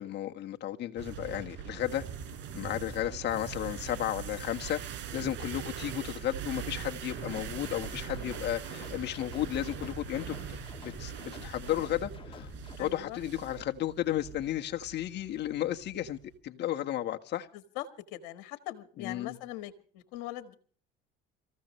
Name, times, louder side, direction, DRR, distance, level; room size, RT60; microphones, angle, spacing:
voice 1, 0.0-2.0 2.5-4.8 5.1-10.4 10.8-12.5 12.8-17.5 19.0-19.4, left 12 dB, 55° left, 1.5 m, -33 dB
sound 1, 1.0-16.4, right 9 dB, 65° right, 5.3 m, -42 dB
sound 2, 7.1-12.8, left 4 dB, 25° left, 2.5 m, -47 dB
voice 2, 12.8-13.2 17.7-17.8 18.1-20.6, left 15 dB, 80° left, 1.6 m, -41 dB
26.0 x 15.0 x 3.2 m
supercardioid pair, 85°, 21 cm